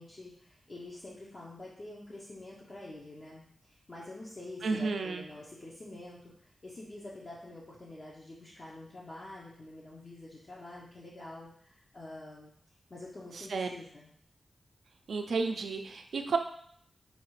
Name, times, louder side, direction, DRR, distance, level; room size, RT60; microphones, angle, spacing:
voice 1, 0.0-12.5 12.9-14.1, left 2 dB, 45° left, -6 dB, 0.8 m, -47 dB
voice 2, 4.6-5.2 13.3-13.7 15.1-16.4, right 4 dB, 85° right, 5 dB, 0.4 m, -32 dB
5.6 x 2.4 x 3.1 m, 0.63 s
cardioid pair, 70°, 0 cm